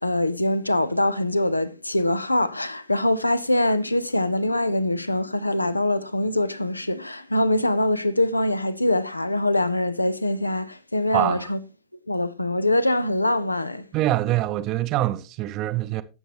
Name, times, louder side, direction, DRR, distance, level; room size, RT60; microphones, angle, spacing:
voice 1, 0.0-11.6 12.1-13.8, left 1 dB, 85° left, 0.6 m, -23 dB
voice 2, 11.1-11.5 13.9-16.0, right 15 dB, 40° right, 0.7 m, -24 dB
18.0 x 7.1 x 3.0 m
figure-of-eight pair, 90°, 0 cm